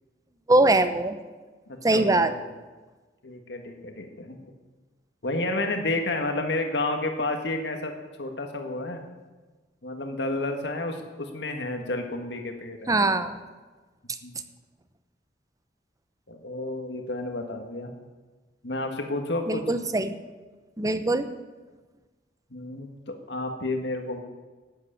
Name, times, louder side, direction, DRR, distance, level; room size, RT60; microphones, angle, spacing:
voice 1, 0.5-1.2 1.8-2.3 12.9-13.4 19.5-20.2 20.8-21.3, right 2 dB, 20° right, 11 dB, 0.8 m, -22 dB
voice 2, 1.7-2.4 3.2-4.4 5.2-7.9 8.2-9.0 9.8-12.9 14.2-14.3 16.3-17.9 18.6-19.6 22.5-24.2, left 2 dB, 70° left, 4 dB, 1.6 m, -31 dB
12.5 x 8.3 x 8.6 m, 1.3 s
head